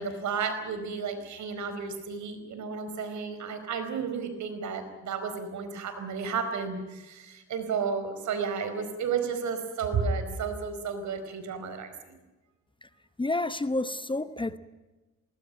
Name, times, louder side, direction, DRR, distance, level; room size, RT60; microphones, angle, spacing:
voice 1, 0.0-12.1, right 5 dB, 70° right, 4.6 m, -32 dB
voice 2, 13.2-14.6, left 2 dB, 15° left, 0.9 m, -29 dB
20.0 x 20.0 x 9.0 m
cardioid pair, 90°, 30 cm